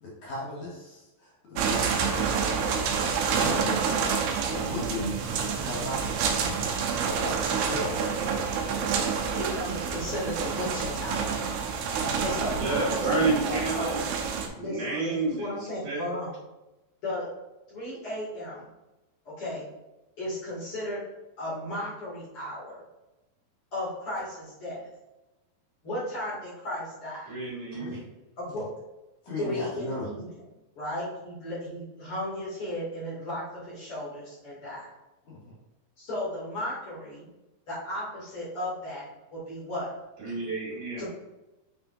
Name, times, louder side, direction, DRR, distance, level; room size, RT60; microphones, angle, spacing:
voice 1, 0.0-2.3 2.8-6.1 6.4-6.8 7.2-8.3 12.0-12.2 12.5-12.8 14.4-14.6 27.7-28.0 28.5-28.6 29.2-30.1 35.2-35.5, left 1 dB, 60° left, -7 dB, 3.6 m, -37 dB
sound 1, 1.6-14.5, right 6 dB, 90° right, 2.7 m, -28 dB
voice 2, 9.4-11.3 12.2-14.0 14.6-16.3 17.0-17.3 17.7-18.6 19.2-19.7 20.2-21.0 21.4-22.8 23.7-24.8 25.8-27.3 28.4-28.6 29.4-30.3 30.7-34.9 36.0-37.3 37.7-39.9 41.0-41.1, left 1 dB, 40° left, -8 dB, 3.1 m, -35 dB
voice 3, 12.6-16.0 27.3-28.0 40.2-41.0, right 3 dB, 60° right, -7 dB, 3.8 m, -30 dB
7.6 x 5.7 x 2.7 m, 1.0 s
omnidirectional pair, 4.2 m